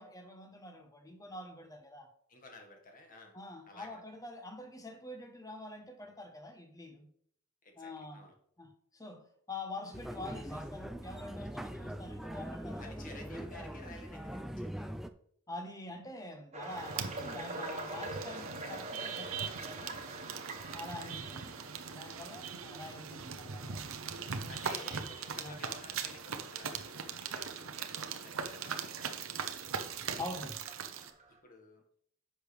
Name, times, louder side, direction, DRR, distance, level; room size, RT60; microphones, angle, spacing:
voice 1, 0.0-2.1 3.3-7.1 7.8-8.3 8.6-13.4 15.5-20.1 20.7-23.8 25.4-25.6 30.2-30.7, left 2 dB, 15° left, 1.2 m, -46 dB
voice 2, 2.3-3.4 3.7-4.0 7.6-8.3 12.8-14.9 20.6-21.1 22.2-22.7 24.5-29.8 31.4-31.8, left 2 dB, 40° left, 1.9 m, -53 dB
sound 1, 9.9-15.1, equal, ahead, 0.4 m, -42 dB
sound 2, 16.5-23.4 24.0-24.2 24.8-24.9 25.4-25.5 26.9-27.0 29.8-29.9 30.7-31.4, right 2 dB, 30° right, 1.0 m, -45 dB
sound 3, 16.7-31.1, right 6 dB, 70° right, 0.8 m, -40 dB
10.0 x 6.6 x 3.5 m
head